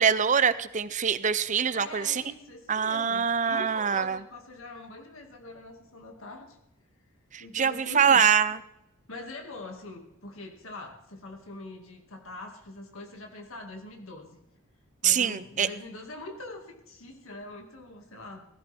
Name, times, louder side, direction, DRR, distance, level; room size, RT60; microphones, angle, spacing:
voice 1, 0.0-2.2 2.7-4.2 7.3-8.6 15.0-15.7, right 7 dB, 35° right, 15 dB, 0.6 m, -24 dB
voice 2, 1.7-6.6 7.4-8.5 9.1-14.4 15.0-18.5, left 2 dB, 80° left, 2 dB, 2.2 m, -43 dB
17.5 x 15.0 x 3.6 m, 0.87 s
head